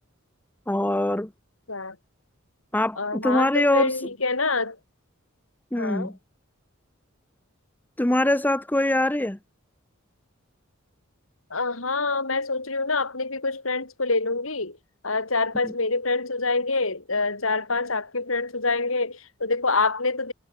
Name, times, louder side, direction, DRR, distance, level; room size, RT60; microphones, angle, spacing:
voice 1, 0.7-1.3 2.7-3.9 5.7-6.1 8.0-9.4, left 1 dB, 10° left, 0.8 m, -23 dB
voice 2, 3.0-4.8 5.8-6.1 11.5-14.8 15.0-20.3, left 3 dB, 75° left, 4.5 m, -26 dB
head